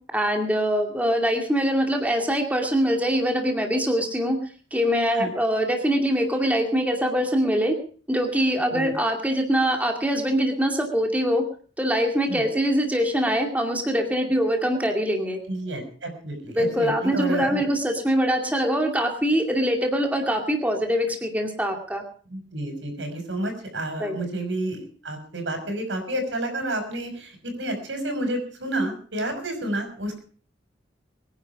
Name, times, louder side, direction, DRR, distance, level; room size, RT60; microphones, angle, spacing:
voice 1, 0.1-4.4 4.7-7.8 8.1-11.4 11.8-15.4 16.6-22.0 24.0-24.2, equal, 10° right, 3 dB, 2.4 m, -23 dB
voice 2, 15.5-17.7 22.3-30.2, right 1 dB, 80° right, 6 dB, 6.0 m, -30 dB
23.0 x 10.5 x 4.8 m, 0.43 s
head